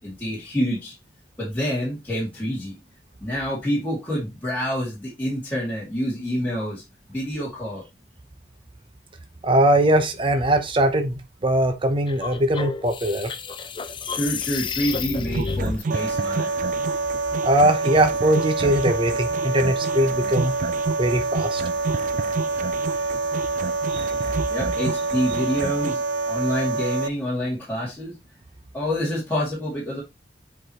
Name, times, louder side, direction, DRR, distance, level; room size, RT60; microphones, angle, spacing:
voice 1, 0.0-0.9 1.4-2.8 3.2-6.8 7.1-7.8 14.1-16.5 24.5-28.1 28.7-30.0, equal, 10° left, 2.4 m, -27 dB
voice 2, 9.4-13.3 17.4-20.5 21.0-21.6 23.9-24.1, right 1 dB, 30° right, 0.8 m, -21 dB
sound 1, 12.1-15.8, left 5 dB, 30° left, 0.5 m, -30 dB
sound 2, 15.3-26.0, right 4 dB, 45° right, 0.4 m, -31 dB
sound 3, 15.9-27.1, right 3 dB, 80° right, 0.7 m, -26 dB
7.7 x 4.8 x 2.9 m
head